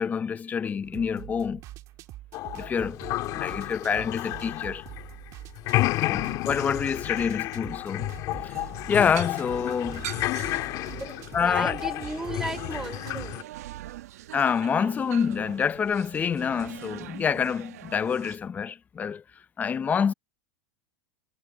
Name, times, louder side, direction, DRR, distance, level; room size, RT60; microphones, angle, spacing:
voice 1, 0.0-1.6 2.5-3.0 3.3-4.8 6.0-8.1 8.4-8.5 8.9-10.1 11.3-11.7 14.3-19.2 19.6-20.1, left 6 dB, 20° left, 0.6 m, -27 dB
sound 1, 0.8-13.4, right 16 dB, 45° right, 1.8 m, -44 dB
sound 2, 2.3-5.3 5.6-13.4, left 17 dB, 45° left, 2.1 m, -31 dB
voice 2, 6.0-6.3 11.0-13.5, right 2 dB, 5° right, 4.1 m, -36 dB
sound 3, 8.4-18.4, right 14 dB, 80° right, 1.2 m, -43 dB
supercardioid pair, 130°, 8 cm